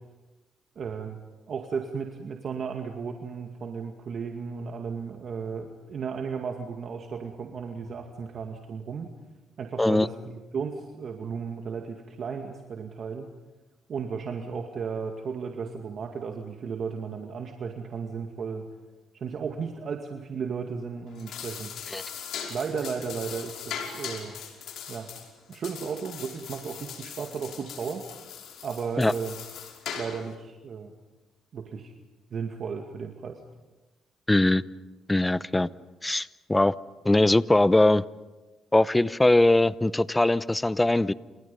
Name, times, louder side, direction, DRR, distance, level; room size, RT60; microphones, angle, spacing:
voice 1, 0.8-9.1 9.6-13.3 13.9-18.7 19.1-21.9 22.5-24.4 24.9-25.1 25.5-28.0 28.6-29.4 30.0-30.9 31.5-31.9 32.3-33.4, right 6 dB, 55° right, 3 dB, 2.2 m, -34 dB
sound 1, 21.1-30.3, left 7 dB, 80° left, 5.3 m, -40 dB
voice 2, 34.3-34.6 35.1-35.7 36.0-36.7 37.0-38.0 38.7-41.1, left 2 dB, 10° left, 17 dB, 0.8 m, -21 dB
29.5 x 28.0 x 5.5 m, 1.2 s
cardioid pair, 90°, 0 cm